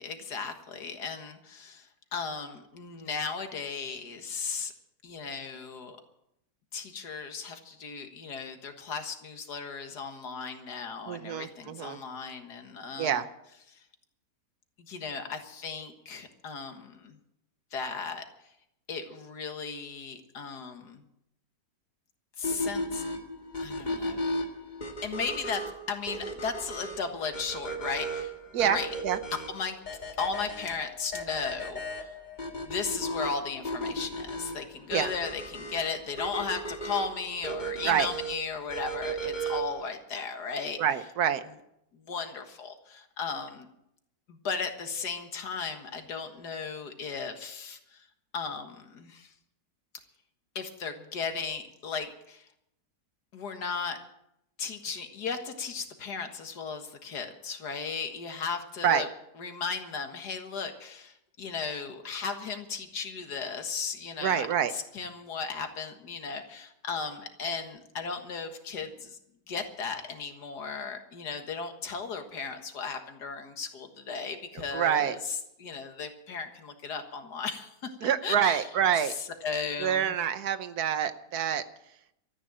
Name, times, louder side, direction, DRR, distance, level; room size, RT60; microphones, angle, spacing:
voice 1, 0.0-4.7 5.0-6.0 6.7-13.1 13.7-13.8 14.8-17.2 17.7-18.3 18.9-21.0 22.4-23.0 23.6-24.2 25.0-25.6 25.9-28.3 28.6-28.9 29.5-29.8 30.2-32.1 32.7-40.8 41.9-43.7 44.3-48.1 48.3-49.3 50.6-52.5 53.3-54.0 54.6-59.1 59.4-64.5 64.7-69.2 69.5-75.2 75.6-78.7 79.0-79.1 79.4-80.1, left 5 dB, 85° left, 6 dB, 2.1 m, -36 dB
voice 2, 11.1-12.0 13.0-13.3 28.5-28.8 29.0-29.2 34.9-35.1 37.8-38.1 40.8-41.4 58.8-59.0 64.2-64.7 74.5-75.2 78.0-79.1 79.8-81.6, right 9 dB, 75° right, 12 dB, 1.4 m, -27 dB
sound 1, 22.4-39.8, right 1 dB, 30° left, 1.7 m, -36 dB
13.5 x 9.9 x 8.9 m, 0.81 s
omnidirectional pair, 1.7 m